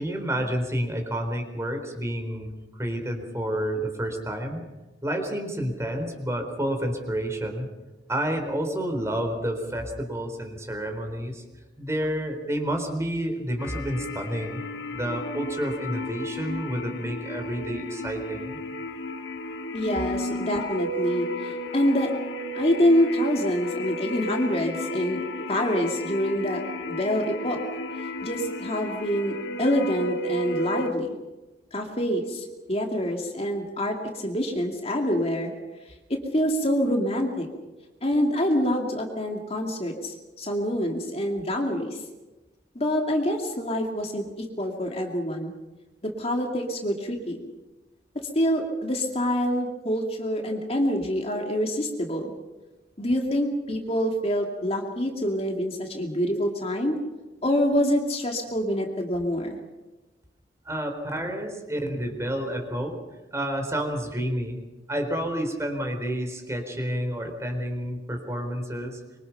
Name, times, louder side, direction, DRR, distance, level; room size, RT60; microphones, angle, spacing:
voice 1, 0.0-2.5 2.8-4.6 5.0-7.7 8.1-11.4 11.8-14.6 14.9-18.6 60.7-63.0 63.3-64.6 64.9-69.0, right 1 dB, 15° right, 4 dB, 3.8 m, -29 dB
sound 1, 13.6-30.9, left 1 dB, 85° left, 2.1 m, -34 dB
voice 2, 19.7-22.1 22.5-25.2 25.5-27.6 28.2-31.2 31.7-35.5 36.1-37.5 38.0-42.0 42.7-45.5 46.0-47.4 48.3-52.3 53.0-57.0 57.4-59.6, equal, 35° left, 2 dB, 2.5 m, -26 dB
25.0 x 24.0 x 5.8 m, 1.1 s
head